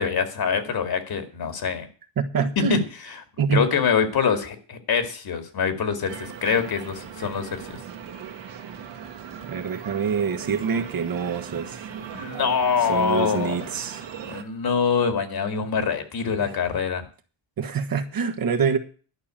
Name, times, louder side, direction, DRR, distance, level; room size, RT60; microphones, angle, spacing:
voice 1, 0.0-1.9 2.6-2.8 3.5-7.8 12.1-13.6 14.3-17.1, left 6 dB, 50° left, 8 dB, 2.3 m, -24 dB
voice 2, 2.2-2.8 3.4-3.6 9.5-11.9 12.8-14.0 16.4-16.5 17.6-18.8, right 6 dB, 50° right, 7 dB, 1.4 m, -25 dB
sound 1, 6.1-14.4, right 7 dB, 65° right, 1.8 m, -38 dB
11.0 x 5.8 x 8.8 m, 0.39 s
cardioid pair, 130°, 46 cm